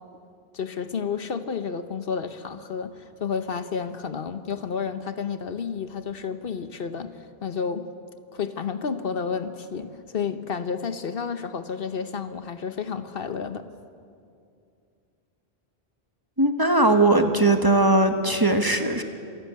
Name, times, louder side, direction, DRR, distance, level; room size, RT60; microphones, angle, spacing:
voice 1, 0.5-7.9 8.3-13.7, left 6 dB, 60° left, 11 dB, 1.1 m, -31 dB
voice 2, 16.4-19.0, right 2 dB, 20° right, 6 dB, 1.2 m, -19 dB
26.5 x 12.0 x 9.4 m, 2.4 s
omnidirectional pair, 1.1 m